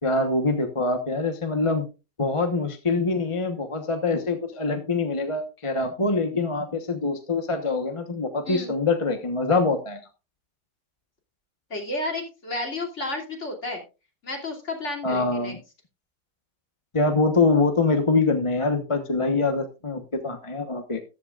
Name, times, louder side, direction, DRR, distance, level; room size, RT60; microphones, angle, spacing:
voice 1, 0.0-1.9 2.2-10.0 15.0-15.6 16.9-21.0, left 3 dB, 20° left, 6 dB, 1.0 m, -24 dB
voice 2, 11.7-13.8 14.2-15.5, left 2 dB, 40° left, 1 dB, 3.1 m, -31 dB
14.5 x 11.5 x 2.4 m, 0.29 s
omnidirectional pair, 1.8 m